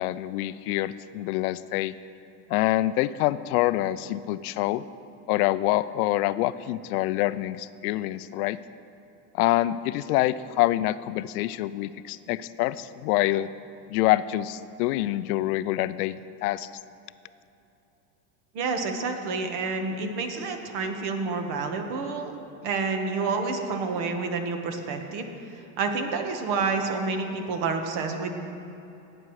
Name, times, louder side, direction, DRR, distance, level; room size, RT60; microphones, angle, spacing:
voice 1, 0.0-2.0 2.5-4.8 5.3-8.6 9.3-13.5 13.9-16.7, left 16 dB, 75° left, 15 dB, 0.6 m, -26 dB
voice 2, 18.5-22.3 22.6-25.3 25.5-28.3, right 4 dB, 55° right, 5 dB, 1.5 m, -29 dB
17.5 x 9.0 x 3.2 m, 2.9 s
supercardioid pair, 110°, 45 cm